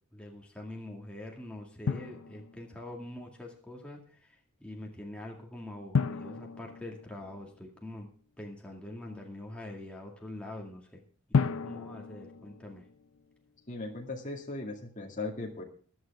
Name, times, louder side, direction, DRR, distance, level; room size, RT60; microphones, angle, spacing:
voice 1, 0.1-8.1 8.4-11.0 11.4-12.9, left 1 dB, 5° left, -1 dB, 2.2 m, -44 dB
Drum, 1.9-2.9 5.9-7.8 11.3-13.3, left 5 dB, 65° left, 0.5 m, -33 dB
voice 2, 13.7-15.6, left 2 dB, 35° left, 0 dB, 2.3 m, -38 dB
16.0 x 11.0 x 3.6 m, 0.44 s
head